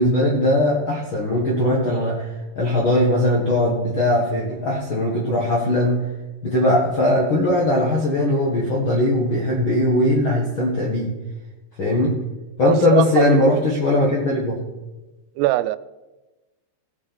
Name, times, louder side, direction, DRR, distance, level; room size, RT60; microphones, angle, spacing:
voice 1, 0.0-6.0 6.4-11.1 11.8-12.1 12.6-14.6, left 1 dB, 65° left, -3 dB, 1.2 m, -19 dB
voice 2, 12.6-13.3 15.4-15.8, right 16 dB, 90° right, 15 dB, 2.6 m, -21 dB
17.0 x 7.4 x 4.2 m, 1.1 s
omnidirectional pair, 4.7 m